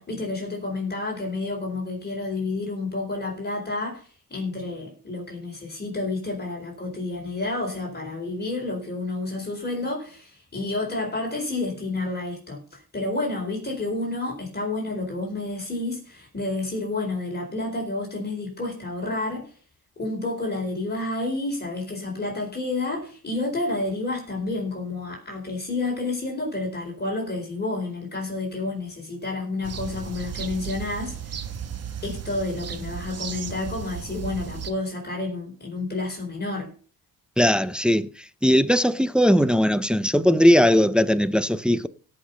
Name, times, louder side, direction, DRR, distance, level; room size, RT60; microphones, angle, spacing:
voice 1, 0.0-19.5 20.0-31.2 32.0-36.7, left 2 dB, 25° left, 4.4 m, -30 dB
sound 1, 29.6-34.7, right 8 dB, 45° right, 1.1 m, -35 dB
voice 2, 37.4-38.1 38.4-41.9, equal, 5° right, 0.5 m, -19 dB
17.0 x 5.7 x 5.7 m
cardioid pair, 125°, 36 cm